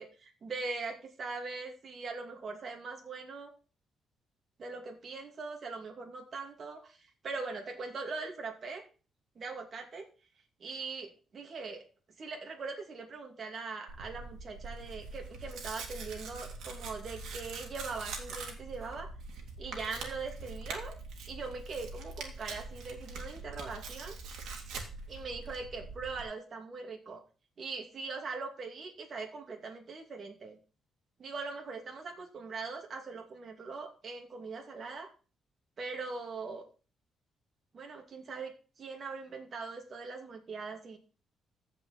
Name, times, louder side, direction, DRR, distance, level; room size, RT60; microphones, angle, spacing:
voice 1, 0.0-3.5 4.6-7.0 7.2-8.8 9.4-10.1 10.6-11.8 12.2-19.1 19.6-21.0 21.3-24.2 25.1-27.2 27.6-30.6 31.2-35.1 35.8-36.6 37.7-38.5 38.8-41.0, right 4 dB, 45° right, 2 dB, 2.5 m, -41 dB
Tearing, 13.9-26.2, right 3 dB, 90° right, 2.4 m, -43 dB
15.0 x 5.1 x 4.1 m, 0.36 s
cardioid pair, 120°, 0 cm